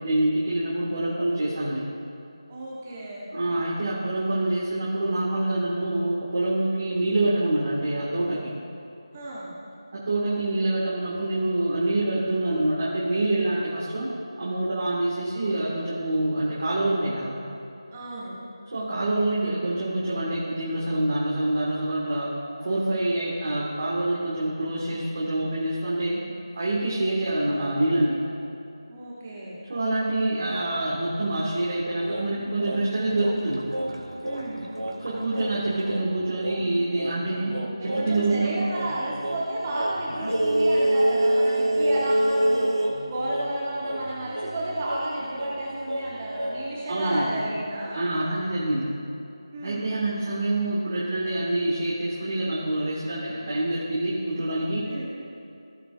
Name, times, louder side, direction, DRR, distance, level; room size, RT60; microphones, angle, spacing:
voice 1, 0.0-1.9 3.3-8.5 9.9-14.1 14.4-17.4 18.7-22.3 22.6-26.2 26.5-28.2 29.6-33.6 35.0-38.6 46.9-47.3 47.9-49.0 49.6-55.1, right 1 dB, 35° right, -7 dB, 1.7 m, -26 dB
voice 2, 2.5-3.3 9.1-9.6 17.9-18.4 28.9-29.6 34.2-34.7 37.5-48.0 49.5-50.0 54.9-55.1, right 1 dB, 20° right, -5 dB, 1.0 m, -32 dB
sound 1, 32.0-38.3 38.7-46.8, right 1 dB, 85° right, 2.2 m, -28 dB
17.0 x 5.9 x 2.4 m, 2.7 s
figure-of-eight pair, 165°, 3 cm